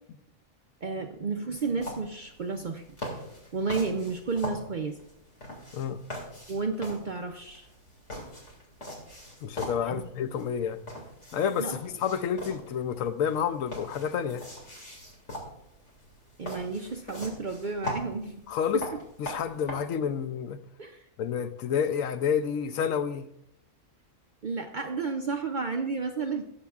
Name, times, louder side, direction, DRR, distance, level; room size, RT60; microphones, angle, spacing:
voice 1, 0.8-2.8 3.5-5.0 6.5-7.7 9.9-10.0 11.6-11.7 16.4-18.3 18.7-18.8 20.8-21.0 24.4-26.4, right 4 dB, 55° right, 0.6 m, -32 dB
sound 1, 1.5-19.7, equal, 60° left, 2.6 m, -42 dB
voice 2, 9.4-10.8 11.3-14.5 18.5-18.8 19.2-20.6 21.2-23.3, left 7 dB, 75° left, 1.1 m, -29 dB
19.5 x 7.1 x 2.4 m
omnidirectional pair, 1.4 m